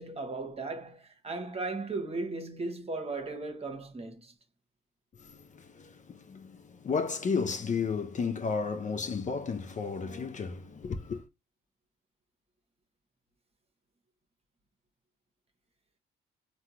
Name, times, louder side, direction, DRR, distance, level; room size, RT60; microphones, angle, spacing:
voice 1, 0.0-4.3, right 3 dB, 30° right, 1.0 m, -36 dB
voice 2, 5.2-11.2, left 5 dB, 40° left, 0.6 m, -33 dB
3.5 x 2.3 x 2.8 m
supercardioid pair, 65°, 20 cm